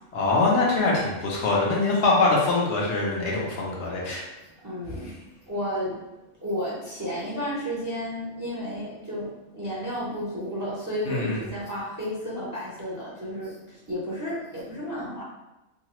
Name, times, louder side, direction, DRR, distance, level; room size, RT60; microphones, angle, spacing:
voice 1, 0.1-4.2 11.0-11.4, left 3 dB, 70° left, -3 dB, 1.0 m, -23 dB
voice 2, 4.6-5.1 5.5-5.9 6.4-9.3 9.5-13.5 13.9-15.2, equal, 25° right, -7 dB, 0.5 m, -32 dB
2.8 x 2.3 x 2.9 m, 0.97 s
omnidirectional pair, 1.3 m